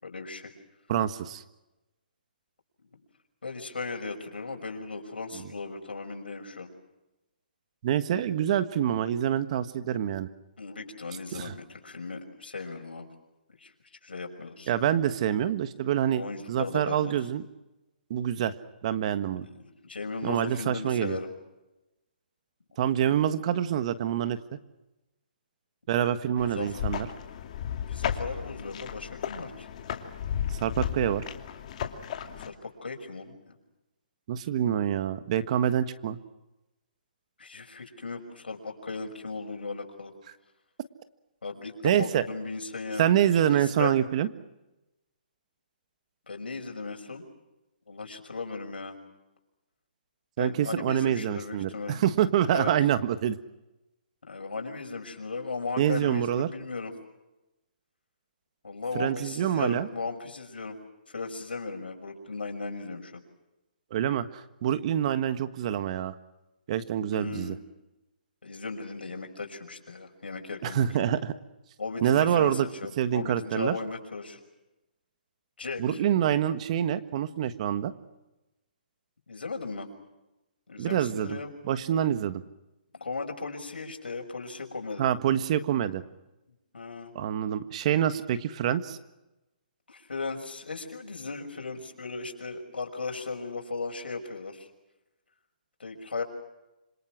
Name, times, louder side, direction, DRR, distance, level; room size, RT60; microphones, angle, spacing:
voice 1, 0.0-0.5 2.9-3.0 3.4-6.7 10.6-13.1 13.6-14.7 16.1-17.1 19.4-21.3 26.1-26.9 27.9-29.7 32.4-33.6 37.4-40.1 41.4-43.1 43.5-43.9 46.3-47.2 47.9-49.0 50.4-52.0 52.5-52.7 54.2-56.9 58.6-60.8 61.1-63.2 67.1-67.6 68.4-70.9 71.8-74.4 75.6-76.0 79.3-79.9 80.7-81.5 82.9-85.1 86.7-87.2 89.9-94.7 95.8-96.2, left 4 dB, 85° left, 4 dB, 6.0 m, -37 dB
voice 2, 0.9-1.4 7.8-10.3 11.3-11.5 14.7-16.2 16.5-17.4 18.1-18.5 18.8-19.5 20.2-21.2 22.8-24.6 25.9-27.1 30.6-31.2 34.3-36.2 41.8-42.2 43.0-44.3 50.4-53.4 55.8-56.5 58.9-59.9 63.9-66.1 66.7-67.6 70.6-71.3 72.0-72.7 73.0-73.8 75.8-77.9 80.8-81.4 81.7-82.4 85.0-86.0 87.1-89.0, right 10 dB, 40° right, 12 dB, 1.5 m, -26 dB
sound 1, 26.4-32.5, left 9 dB, 45° left, 2.5 m, -34 dB
27.0 x 26.5 x 6.2 m, 1.0 s
hypercardioid pair, 150°, 5 cm